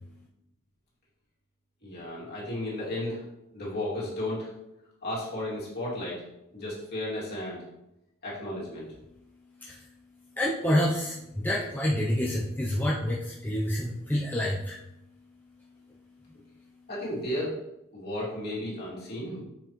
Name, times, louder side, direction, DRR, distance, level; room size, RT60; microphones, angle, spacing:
voice 1, 1.8-3.2 3.5-4.5 5.0-6.2 6.5-7.6 8.2-8.9 16.9-17.6 17.9-19.4, left 1 dB, 50° left, -6 dB, 2.6 m, -34 dB
voice 2, 10.4-14.8, equal, 10° left, -4 dB, 0.6 m, -28 dB
6.9 x 5.7 x 3.1 m, 0.90 s
head